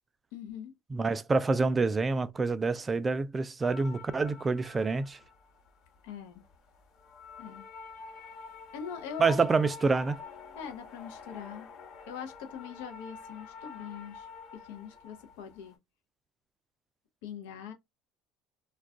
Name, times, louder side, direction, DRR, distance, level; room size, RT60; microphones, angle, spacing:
voice 1, 0.3-0.7 6.0-6.4 7.4-7.6 8.7-9.4 10.6-11.7 12.1-14.3 14.7-15.8 17.2-17.7, left 7 dB, 90° left, 0.6 m, -42 dB
voice 2, 0.9-5.2 9.2-10.2, right 4 dB, 20° right, 0.3 m, -27 dB
sound 1, 3.6-15.8, left 5 dB, 70° left, 1.2 m, -48 dB
2.3 x 2.2 x 3.5 m
supercardioid pair, 110°, 0 cm